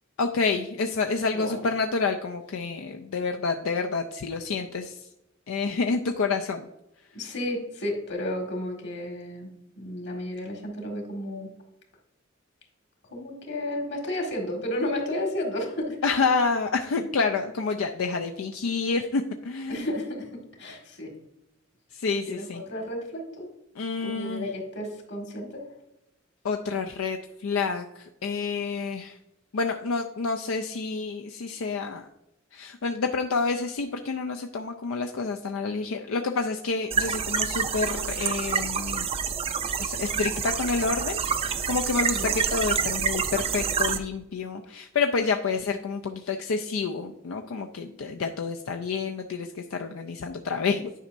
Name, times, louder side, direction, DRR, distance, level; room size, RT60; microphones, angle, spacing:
voice 1, 0.2-5.0 5.5-6.7 16.0-19.9 21.9-22.6 23.8-24.5 26.4-29.2 29.5-32.1 32.5-39.1 39.8-50.9, left 4 dB, 90° left, 4 dB, 0.5 m, -28 dB
voice 2, 7.1-11.5 13.1-16.2 19.7-20.3 20.6-21.1 22.3-23.5 24.0-25.6 42.1-42.3, left 1 dB, 60° left, 1 dB, 1.7 m, -32 dB
sound 1, 36.9-44.0, right 6 dB, 30° right, 0.4 m, -27 dB
10.0 x 5.3 x 2.6 m, 0.87 s
head